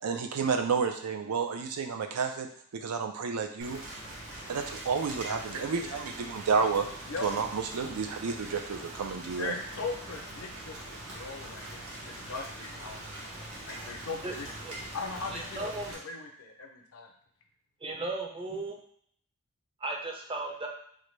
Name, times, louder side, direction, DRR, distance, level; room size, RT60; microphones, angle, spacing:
voice 1, 0.0-3.8 4.5-6.9 7.2-9.5, right 5 dB, 90° right, 6 dB, 0.5 m, -31 dB
Rain, 3.6-15.9, right 1 dB, 70° right, 1.1 m, -43 dB
voice 2, 5.5-6.1 7.1-7.3 9.4-13.0 13.7-14.5 14.9-17.1, left 4 dB, 70° left, 3 dB, 0.6 m, -39 dB
voice 3, 15.3-15.9 17.8-18.8 19.8-20.7, right 2 dB, 25° right, 0 dB, 0.5 m, -35 dB
3.8 x 2.2 x 3.1 m, 0.64 s
head